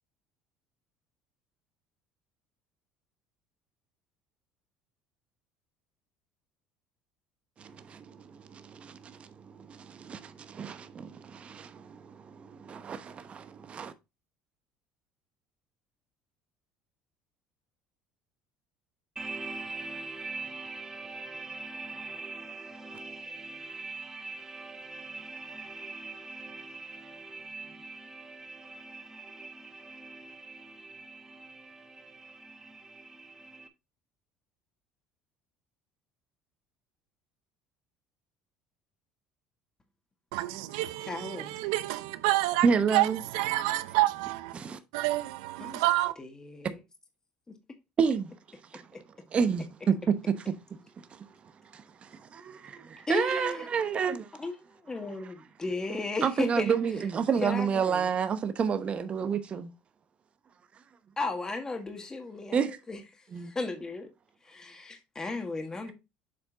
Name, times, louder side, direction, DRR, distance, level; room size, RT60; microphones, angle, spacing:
voice 1, 7.6-13.9 42.6-43.2 44.5-44.8 48.0-48.3 48.7-48.8 49.3-50.0 51.1-51.2 51.7-54.3 56.2-59.7 62.5-62.7 63.3-63.5, right 6 dB, 35° right, 0.9 m, -30 dB
sound 1, 19.2-33.7, right 3 dB, 20° right, 1.3 m, -42 dB
voice 2, 40.3-44.6 44.9-46.1, right 17 dB, 85° right, 0.6 m, -28 dB
voice 3, 41.0-41.5 45.6-45.8 46.2-46.8 47.5-47.6 53.1-53.7 54.4-56.8 57.4-58.2 61.2-64.1 64.4-65.9, left 3 dB, 20° left, 1.7 m, -35 dB
7.7 x 4.4 x 3.9 m
supercardioid pair, 95°, 3 cm